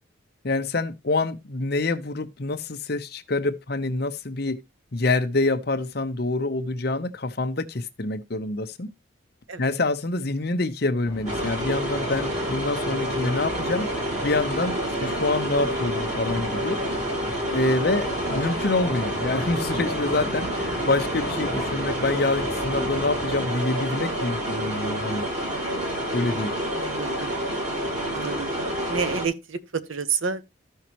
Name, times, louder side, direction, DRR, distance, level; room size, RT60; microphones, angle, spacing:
voice 1, 0.4-4.6 4.9-8.9 9.6-13.9 14.2-16.8 17.5-25.3 26.1-26.5, left 2 dB, 50° left, 0.8 m, -26 dB
sound 1, 11.0-23.5, left 1 dB, 15° left, 1.2 m, -37 dB
sound 2, 11.3-29.3, equal, 35° right, 2.7 m, -28 dB
voice 2, 26.7-27.3 28.1-28.5 28.9-30.4, right 5 dB, 80° right, 1.0 m, -29 dB
13.5 x 5.6 x 3.0 m
head